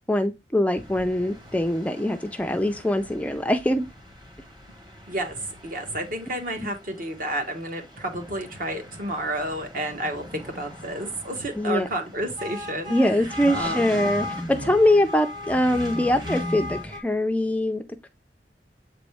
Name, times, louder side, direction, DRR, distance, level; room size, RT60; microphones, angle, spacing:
voice 1, 0.1-3.8 11.6-11.9 12.9-18.1, left 1 dB, 10° left, 0.4 m, -23 dB
sound 1, 0.7-17.0, left 1 dB, 25° right, 1.3 m, -38 dB
voice 2, 5.1-12.9 13.5-14.1 14.6-14.7, right 1 dB, 50° right, 1.4 m, -31 dB
7.6 x 4.1 x 3.4 m
head